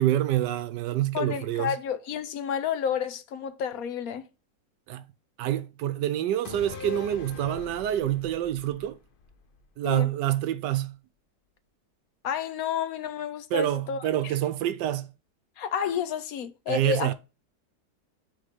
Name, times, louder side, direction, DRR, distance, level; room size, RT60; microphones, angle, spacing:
voice 1, 0.0-1.7 4.9-5.0 5.4-9.0 9.8-10.9 13.5-15.1 16.7-17.1, right 12 dB, 80° right, 1.2 m, -27 dB
voice 2, 1.1-4.2 9.8-10.1 12.2-14.3 15.6-17.1, left 8 dB, 65° left, 1.0 m, -30 dB
sound 1, 6.4-10.0 10.3-10.4, left 5 dB, 50° left, 0.7 m, -42 dB
6.5 x 4.1 x 5.5 m
omnidirectional pair, 1.9 m